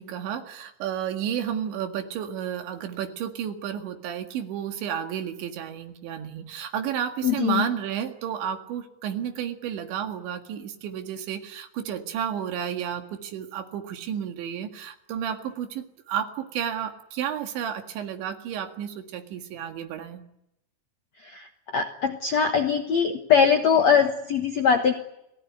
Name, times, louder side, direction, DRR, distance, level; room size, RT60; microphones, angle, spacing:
voice 1, 0.0-20.2, right 9 dB, 80° right, 5 dB, 4.3 m, -32 dB
voice 2, 7.2-7.7 21.2-24.9, left 7 dB, 70° left, 5 dB, 1.6 m, -22 dB
29.5 x 19.0 x 9.6 m, 0.84 s
omnidirectional pair, 5.2 m